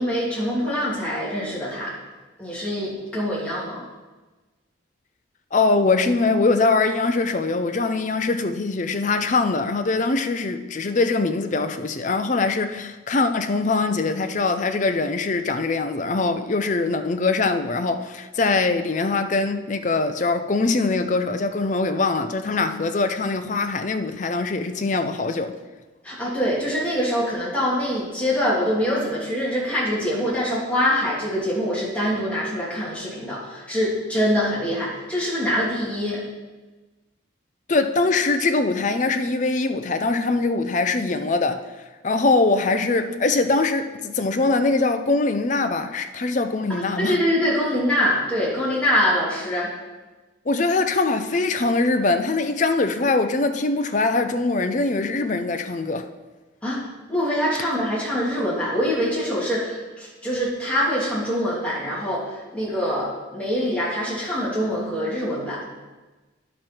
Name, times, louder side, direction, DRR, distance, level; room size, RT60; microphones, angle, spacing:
voice 1, 0.0-1.9 2.4-3.8 26.0-36.2 46.7-49.7 56.6-56.8 57.1-65.6, equal, 5° left, 2.6 m, -24 dB
voice 2, 5.5-25.6 37.7-41.7 42.0-47.2 50.5-56.1, left 3 dB, 40° left, 0.5 m, -22 dB
10.0 x 6.3 x 4.5 m
head